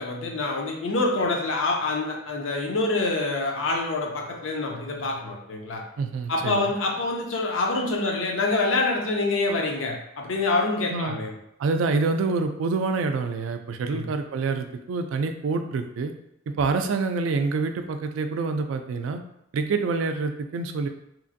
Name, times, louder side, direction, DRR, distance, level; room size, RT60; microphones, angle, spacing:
voice 1, 0.0-5.8 6.3-11.4 13.9-14.1, left 3 dB, 85° left, 1 dB, 0.6 m, -26 dB
voice 2, 6.0-6.7 10.9-11.2 11.6-16.1 16.6-19.2 19.5-20.9, right 4 dB, 80° right, 7 dB, 0.3 m, -26 dB
2.9 x 2.5 x 2.5 m, 0.79 s
head